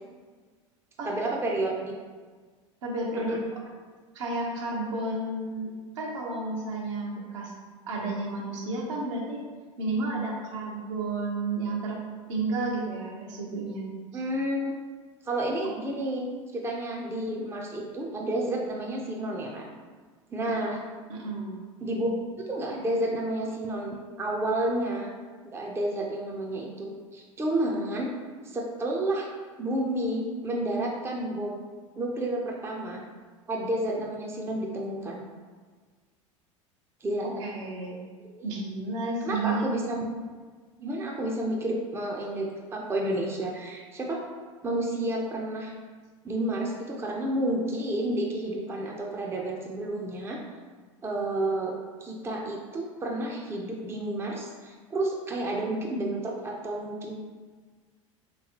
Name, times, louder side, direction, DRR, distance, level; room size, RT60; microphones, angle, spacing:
voice 1, 1.1-1.9 3.3-3.4 14.1-14.8 15.2-16.2 16.5-19.7 20.3-20.8 21.8-22.1 22.5-25.1 25.4-28.1 28.4-29.3 29.6-31.6 32.0-33.0 33.5-35.2 37.0-37.4 38.4-38.5 39.2-40.0 40.8-44.2 44.6-45.7 46.2-50.4 51.0-51.7 52.0-57.1, right 1 dB, 15° right, -1 dB, 0.5 m, -30 dB
voice 2, 2.8-3.4 4.1-7.5 7.8-9.4 9.8-12.0 12.3-13.8 14.1-14.2 20.5-20.7 21.1-21.5 37.4-38.0 38.4-39.7, right 2 dB, 65° right, -2 dB, 0.8 m, -31 dB
3.3 x 3.0 x 2.9 m, 1.5 s
hypercardioid pair, 80°, 16 cm